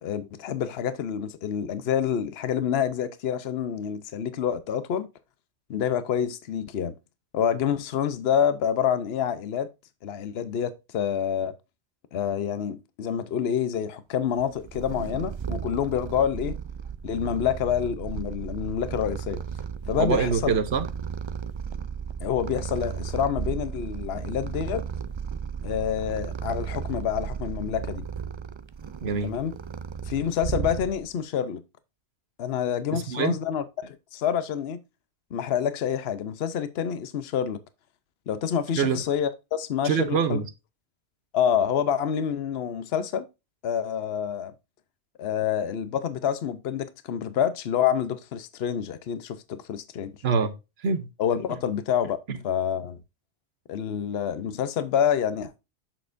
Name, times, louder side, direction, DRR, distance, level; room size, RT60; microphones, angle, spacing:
voice 1, 0.0-5.1 5.7-6.9 7.3-9.7 10.0-11.5 12.1-16.5 17.0-19.4 19.9-20.5 22.2-24.8 25.6-28.0 29.2-29.5 30.1-31.6 32.4-34.8 35.3-37.6 38.3-40.4 41.3-43.3 43.6-44.5 45.2-50.1 51.2-52.2 52.4-53.0 53.7-55.5, left 8 dB, 70° left, 1.0 m, -27 dB
Purr, 14.4-31.2, right 7 dB, 50° right, 0.3 m, -34 dB
voice 2, 20.0-20.9 29.0-29.4 32.9-33.4 38.8-39.0 39.8-40.5 50.2-51.1 52.3-52.4, right 5 dB, 70° right, 1.1 m, -25 dB
7.8 x 6.5 x 2.5 m
omnidirectional pair, 1.1 m